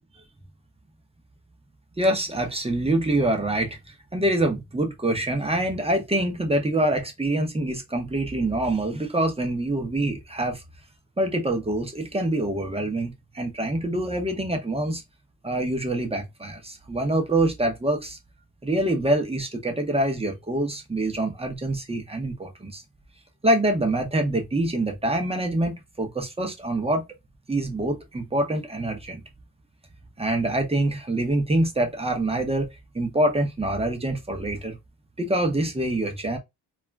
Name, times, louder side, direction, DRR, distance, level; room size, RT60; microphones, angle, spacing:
voice 1, 2.0-10.6 11.2-15.0 15.4-18.2 18.6-22.8 23.4-27.0 27.5-29.2 30.2-34.8 35.2-36.4, right 1 dB, 15° right, 0.7 m, -25 dB
2.4 x 2.1 x 3.2 m
cardioid pair, 100°, 40 cm